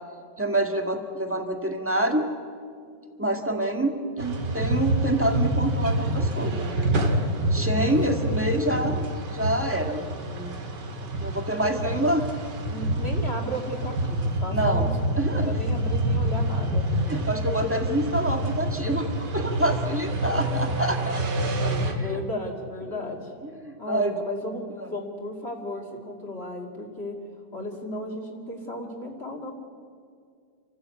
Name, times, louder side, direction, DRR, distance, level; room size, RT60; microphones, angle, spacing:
voice 1, 0.4-2.3 3.2-6.9 7.5-10.6 11.2-12.3 14.5-14.9 15.2-15.6 17.1-21.2 21.6-22.2 22.9-23.1 23.6-24.1 24.8-24.9, right 1 dB, 5° right, 4 dB, 1.7 m, -27 dB
sound 1, 4.2-21.9, right 1 dB, 70° right, 2.5 m, -27 dB
voice 2, 7.6-8.2 11.9-12.1 12.7-14.9 15.4-16.9 20.3-20.4 21.4-23.3 23.8-27.2 27.5-29.5, left 1 dB, 35° left, 0 dB, 2.6 m, -35 dB
28.0 x 14.5 x 8.4 m, 2.2 s
omnidirectional pair, 1.9 m